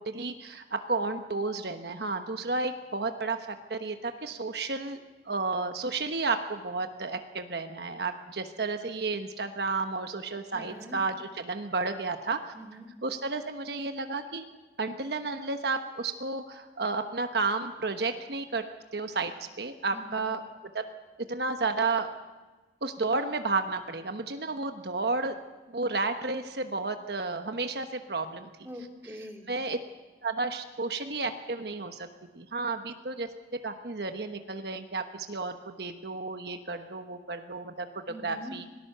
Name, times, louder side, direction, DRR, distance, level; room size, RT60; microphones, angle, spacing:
voice 1, 0.0-12.5 13.0-14.4 14.8-18.6 18.9-20.4 20.7-20.8 21.3-22.1 22.8-25.4 25.7-28.5 29.5-29.8 30.2-32.1 32.3-38.6, right 3 dB, 70° right, 6 dB, 1.2 m, -32 dB
voice 2, 10.5-11.0 12.5-12.9 19.9-20.3 28.6-29.5 38.1-38.5, equal, 15° right, 1 dB, 2.5 m, -43 dB
25.5 x 18.5 x 6.8 m, 1.2 s
head